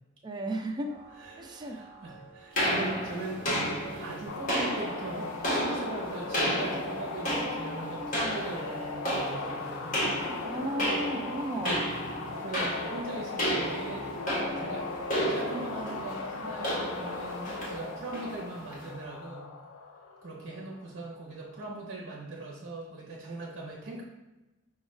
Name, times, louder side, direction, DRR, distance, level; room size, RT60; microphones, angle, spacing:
voice 1, 0.2-0.9 1.4-1.8 10.4-11.8, right 1 dB, 20° right, 4 dB, 0.3 m, -34 dB
sound 1, 0.8-15.3, right 1 dB, 25° left, 1.5 m, -48 dB
voice 2, 1.2-10.0 11.5-11.9 12.4-14.1 14.6-15.0 15.3-19.5 20.2-24.0, right 2 dB, 60° right, -3 dB, 0.7 m, -40 dB
sound 2, 2.5-18.9, equal, 40° left, 1.3 m, -33 dB
sound 3, 4.3-21.0, left 4 dB, 85° left, 0.4 m, -39 dB
5.3 x 2.3 x 3.1 m, 1.0 s
head